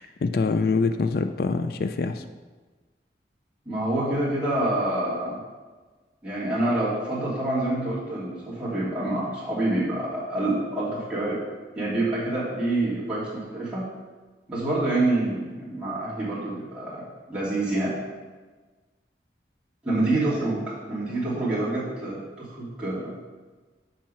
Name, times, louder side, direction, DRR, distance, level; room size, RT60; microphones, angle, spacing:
voice 1, 0.0-2.2, left 4 dB, 55° left, 9 dB, 0.4 m, -25 dB
voice 2, 3.6-5.4 6.2-11.4 11.8-13.8 14.5-17.0 17.3-17.9 19.8-23.1, right 2 dB, 5° right, -10 dB, 2.9 m, -27 dB
7.5 x 5.6 x 5.6 m, 1.3 s
head